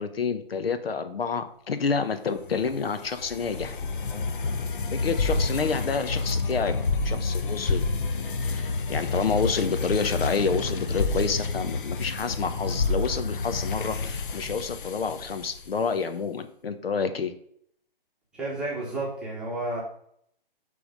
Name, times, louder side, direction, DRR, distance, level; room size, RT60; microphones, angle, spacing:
voice 1, 0.0-4.3 4.9-7.8 8.4-17.3, left 5 dB, 85° left, 10 dB, 1.0 m, -29 dB
sound 1, 2.4-15.8, left 3 dB, 60° left, 0.9 m, -29 dB
voice 2, 18.3-19.8, right 2 dB, 5° right, -6 dB, 0.9 m, -31 dB
8.5 x 3.5 x 5.4 m, 0.67 s
hypercardioid pair, 165°, 29 cm